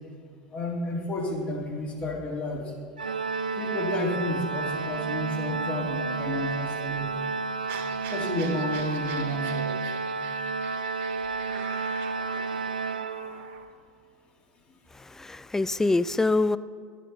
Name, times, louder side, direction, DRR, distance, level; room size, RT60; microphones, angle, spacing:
voice 1, 0.5-2.7 3.6-7.2 8.1-9.9, left 1 dB, 35° left, -2 dB, 2.8 m, -31 dB
Organ, 3.0-13.7, right 4 dB, 90° right, 0.4 m, -31 dB
sound 1, 7.7-13.6, right 6 dB, 55° right, 1.4 m, -45 dB
voice 2, 14.9-16.6, left 3 dB, 10° left, 16 dB, 0.4 m, -25 dB
12.5 x 9.8 x 4.2 m, 2.1 s
hypercardioid pair, 80°, 4 cm